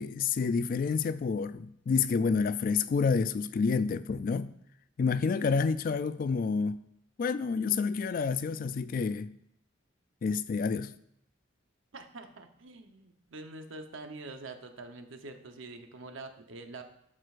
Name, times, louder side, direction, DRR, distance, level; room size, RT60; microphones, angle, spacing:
voice 1, 0.0-4.5 5.0-6.8 7.2-9.3 10.2-10.9, left 5 dB, 45° left, 0.3 m, -29 dB
voice 2, 11.9-16.8, right 2 dB, 85° right, 0.9 m, -45 dB
12.0 x 6.2 x 2.5 m
head